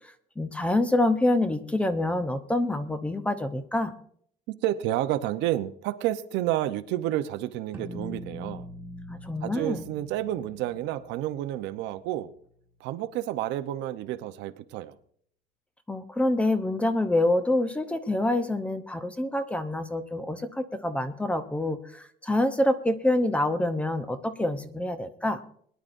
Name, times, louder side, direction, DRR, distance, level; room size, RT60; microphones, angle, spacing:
voice 1, 0.4-3.9 9.1-9.9 15.9-25.4, left 1 dB, 5° left, 0.7 m, -26 dB
voice 2, 4.6-8.7 9.4-12.3 12.8-14.9, right 13 dB, 75° right, 0.8 m, -30 dB
sound 1, 7.7-12.6, left 1 dB, 10° right, 1.6 m, -43 dB
21.5 x 10.5 x 2.6 m
cardioid pair, 175°, 18 cm